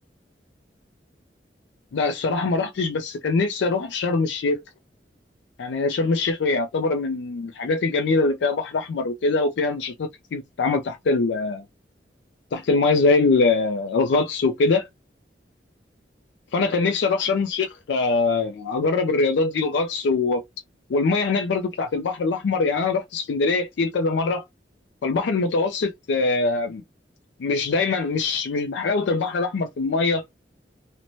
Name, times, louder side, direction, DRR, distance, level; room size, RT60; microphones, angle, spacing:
voice 1, 1.9-4.6 5.6-11.6 12.5-14.9 16.5-20.4 20.9-24.4 25.0-26.8 27.4-30.2, left 3 dB, 90° left, 0.4 m, -23 dB
2.6 x 2.1 x 2.9 m
head